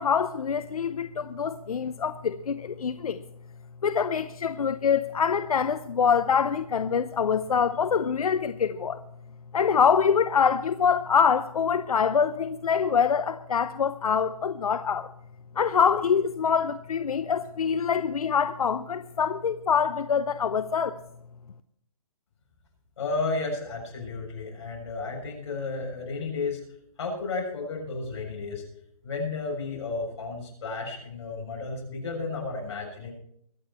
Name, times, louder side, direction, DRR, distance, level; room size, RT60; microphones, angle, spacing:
voice 1, 0.0-3.2 3.8-9.0 9.5-15.1 15.6-21.0, left 6 dB, 85° left, 0.7 m, -25 dB
voice 2, 23.0-26.6 27.0-28.6 29.0-33.1, left 3 dB, 50° left, 6.8 m, -32 dB
23.0 x 8.7 x 4.3 m
hypercardioid pair, 160°, 18 cm